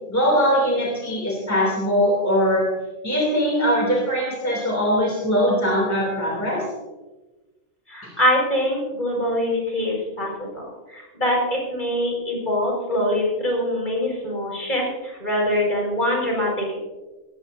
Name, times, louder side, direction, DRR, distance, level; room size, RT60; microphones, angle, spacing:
voice 1, 0.1-2.7 3.0-6.6 8.0-8.1, equal, 10° left, -2 dB, 3.0 m, -21 dB
voice 2, 7.9-16.8, left 1 dB, 40° left, -2 dB, 5.5 m, -24 dB
19.0 x 16.0 x 2.7 m, 1.1 s
omnidirectional pair, 1.3 m